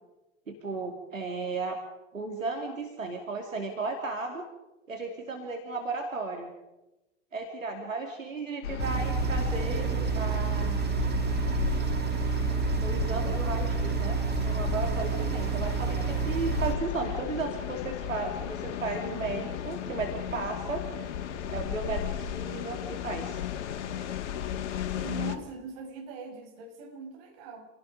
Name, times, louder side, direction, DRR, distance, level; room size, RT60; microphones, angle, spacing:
voice 1, 0.5-1.8 2.1-4.4 4.9-6.5 7.3-10.8 12.8-21.0 21.5-23.4, right 3 dB, 85° right, 3 dB, 3.1 m, -35 dB
sound 1, 8.6-25.4, left 8 dB, 65° left, 2.2 m, -34 dB
sound 2, 8.8-16.8, right 10 dB, 25° right, 1.9 m, -30 dB
voice 2, 24.9-27.7, right 5 dB, 50° right, 3 dB, 6.4 m, -41 dB
28.0 x 17.0 x 5.4 m, 1.0 s
figure-of-eight pair, 90°, 38 cm